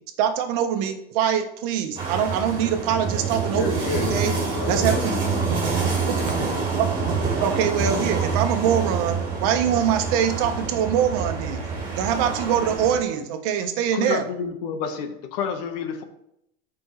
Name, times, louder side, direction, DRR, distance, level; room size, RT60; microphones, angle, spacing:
voice 1, 0.2-4.3 4.7-5.1 6.1-6.2 6.8-6.9 7.4-11.6 12.0-14.2, right 9 dB, 65° right, 6 dB, 1.1 m, -23 dB
sound 1, 2.0-13.0, right 5 dB, 25° right, 3.4 m, -26 dB
voice 2, 3.5-6.2, left 5 dB, 85° left, 4 dB, 1.8 m, -32 dB
voice 3, 13.9-16.0, left 7 dB, 70° left, 7 dB, 1.3 m, -29 dB
13.5 x 5.2 x 3.2 m, 0.78 s
cardioid pair, 160°, 21 cm